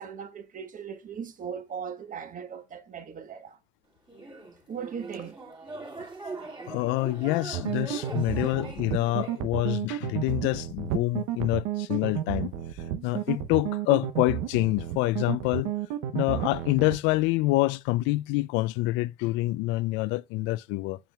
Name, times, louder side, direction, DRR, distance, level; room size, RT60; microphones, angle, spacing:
voice 1, 0.0-3.6 4.7-5.4, right 7 dB, 45° right, 1.2 m, -38 dB
sound 1, 4.1-9.4, right 3 dB, 25° right, 2.4 m, -41 dB
voice 2, 6.7-12.6 13.0-15.7 16.1-21.0, left 19 dB, 80° left, 0.4 m, -26 dB
sound 2, 7.5-17.0, right 12 dB, 85° right, 0.8 m, -31 dB
7.2 x 5.8 x 2.3 m
supercardioid pair, 75°, 19 cm